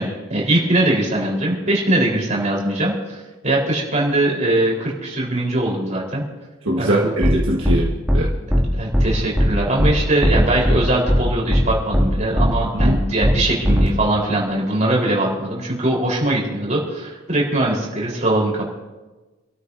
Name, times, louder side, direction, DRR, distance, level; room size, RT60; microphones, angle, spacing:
voice 1, 0.0-6.2 6.8-7.1 8.7-18.6, right 1 dB, 35° right, -3 dB, 4.6 m, -21 dB
voice 2, 6.7-8.3 12.8-13.0, right 1 dB, 70° right, -4 dB, 1.7 m, -21 dB
sound 1, 7.2-7.3 7.6-7.8 8.1-8.2 8.5-8.6 8.9-9.1 9.4-9.5 9.8-9.9 10.2-10.8 11.1-11.2 11.5-11.6 11.9-12.1 12.4-12.5 12.8-12.9 13.2-13.3 13.6-13.9, equal, 5° right, 2.6 m, -16 dB
27.5 x 13.5 x 2.8 m, 1.2 s
head